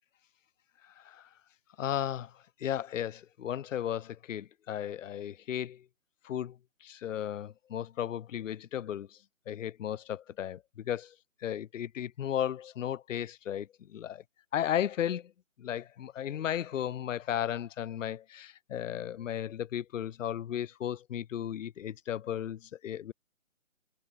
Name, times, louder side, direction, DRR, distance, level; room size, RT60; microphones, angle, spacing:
voice 1, 0.8-1.3 1.8-5.9 6.2-9.2 9.5-11.1 11.4-14.2 14.5-15.3 15.6-23.1, left 10 dB, 70° left, 0.5 m, -35 dB
hypercardioid pair, 175°, 40 cm